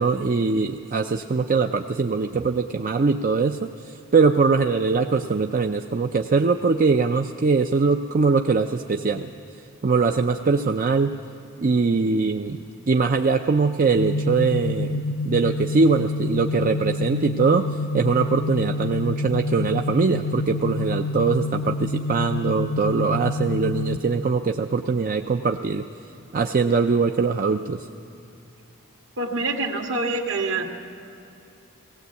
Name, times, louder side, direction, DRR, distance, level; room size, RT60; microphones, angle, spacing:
voice 1, 0.0-3.7 4.1-9.3 9.8-11.2 11.6-12.6 12.9-25.8 26.3-27.9, right 4 dB, 40° right, 5 dB, 0.5 m, -22 dB
sound 1, 14.0-24.0, left 2 dB, 45° left, 0.6 m, -28 dB
voice 2, 29.2-30.9, right 3 dB, 60° right, 2 dB, 1.9 m, -26 dB
18.5 x 17.0 x 8.2 m, 2.7 s
head